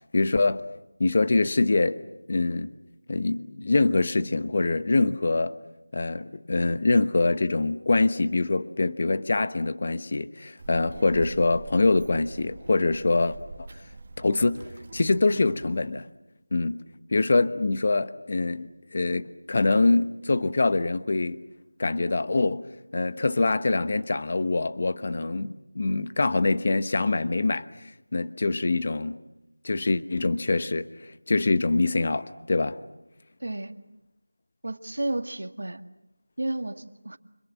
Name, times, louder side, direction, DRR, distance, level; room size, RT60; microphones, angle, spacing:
voice 1, 0.1-0.6 1.0-2.0 2.3-2.7 3.1-5.6 5.9-13.7 14.2-14.6 14.9-16.1 16.5-16.8 17.1-21.4 21.8-29.2 29.6-32.8, left 3 dB, 35° left, 1.1 m, -24 dB
Child speech kid speaking, 10.6-15.9, right 3 dB, 30° right, 1.6 m, -43 dB
voice 2, 33.4-33.7 34.6-35.8 36.4-37.2, right 1 dB, 65° right, 1.9 m, -32 dB
30.0 x 26.5 x 7.4 m
figure-of-eight pair, 175°, 0 cm